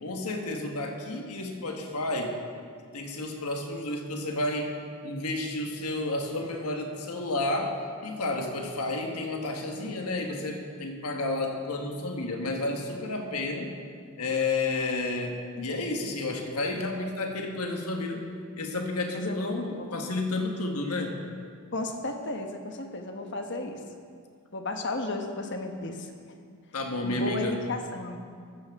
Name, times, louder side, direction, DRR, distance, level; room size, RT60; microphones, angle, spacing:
voice 1, 0.0-2.4 2.9-13.7 14.2-18.3 18.6-21.2 26.7-27.6, left 2 dB, 85° left, 3 dB, 1.4 m, -31 dB
voice 2, 19.1-20.0 21.7-23.8 24.5-26.1 27.0-28.2, left 2 dB, 55° left, 4 dB, 1.2 m, -34 dB
14.5 x 14.0 x 3.6 m, 2.1 s
head